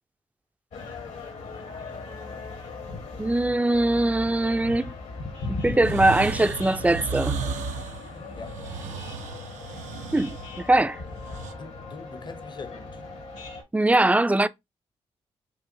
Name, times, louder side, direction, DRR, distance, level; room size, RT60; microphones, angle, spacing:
sound 1, 0.7-13.6, left 3 dB, 70° left, 1.3 m, -38 dB
voice 1, 3.2-4.9 5.5-7.4 10.1-11.0 13.7-14.5, right 2 dB, 10° right, 0.4 m, -22 dB
sound 2, 5.8-11.5, right 6 dB, 80° right, 0.5 m, -34 dB
voice 2, 11.3-13.0, left 4 dB, 40° left, 0.7 m, -43 dB
4.8 x 2.5 x 2.7 m
hypercardioid pair, 40°, 12 cm